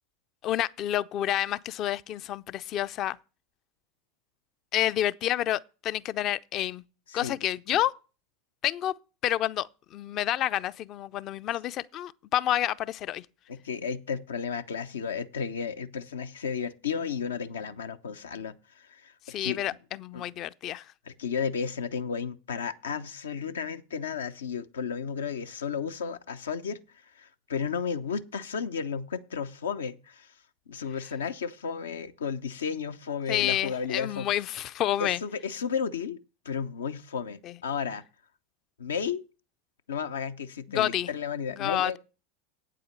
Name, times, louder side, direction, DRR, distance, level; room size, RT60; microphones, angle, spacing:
voice 1, 0.4-3.2 4.7-6.8 7.1-7.9 8.6-8.9 9.2-13.2 19.3-20.8 33.3-35.2 37.4-37.5 40.7-41.1 41.6-42.0, left 12 dB, 45° left, 0.5 m, -29 dB
voice 2, 13.5-19.6 20.1-20.2 20.7-26.8 27.2-30.3 30.7-34.3 35.0-36.2 36.4-38.0 38.8-39.2 39.9-42.0, left 6 dB, 75° left, 0.7 m, -33 dB
8.8 x 7.7 x 6.5 m
figure-of-eight pair, 85°, 0 cm